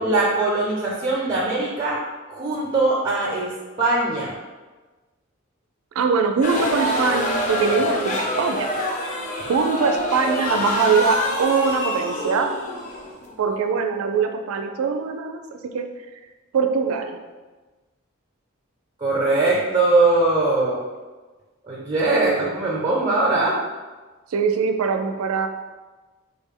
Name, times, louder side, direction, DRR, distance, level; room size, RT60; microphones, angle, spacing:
voice 1, 0.0-2.0 2.3-3.5 3.8-4.3 19.0-20.8 21.7-23.6, right 2 dB, 25° right, -5 dB, 0.5 m, -21 dB
voice 2, 6.0-8.9 9.5-12.6 13.4-15.9 16.5-17.2 22.0-22.6 24.3-25.5, right 5 dB, 85° right, 6 dB, 0.4 m, -22 dB
sound 1, 6.4-13.6, left 1 dB, 35° left, 0.5 m, -26 dB
3.5 x 2.0 x 3.6 m, 1.3 s
head